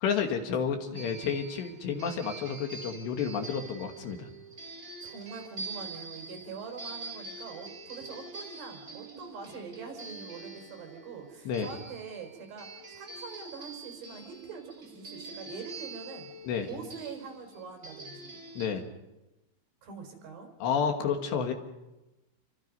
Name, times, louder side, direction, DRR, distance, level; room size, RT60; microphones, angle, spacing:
voice 1, 0.0-4.3 11.5-11.7 16.4-16.7 18.6-18.8 20.6-21.5, left 7 dB, 70° left, 5 dB, 3.5 m, -30 dB
sound 1, 0.9-18.7, right 3 dB, 20° right, 3.3 m, -45 dB
voice 2, 0.9-1.2 5.0-16.3 16.6-18.4 19.8-20.5, right 5 dB, 60° right, 3 dB, 6.7 m, -44 dB
29.0 x 25.0 x 5.4 m, 1.0 s
omnidirectional pair, 5.5 m